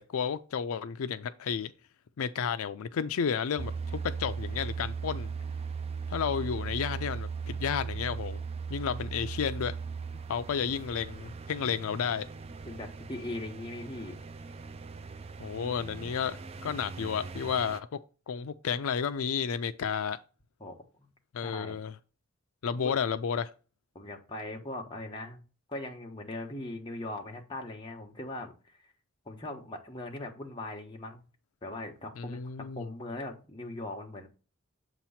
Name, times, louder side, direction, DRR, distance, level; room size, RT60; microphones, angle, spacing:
voice 1, 0.0-1.7 2.2-5.3 6.1-8.4 8.7-9.7 10.3-12.3 15.4-17.9 18.3-20.2 21.3-21.9 22.6-23.5 32.2-32.9, left 7 dB, 75° left, 0.4 m, -32 dB
sound 1, 3.6-17.8, right 5 dB, 30° right, 0.3 m, -38 dB
voice 2, 12.7-14.1 20.6-20.7 21.4-21.8 22.8-22.9 23.9-25.4 25.7-28.9 29.2-31.2 31.6-32.4 32.7-34.3, left 1 dB, 20° left, 1.2 m, -40 dB
7.5 x 3.0 x 5.6 m
head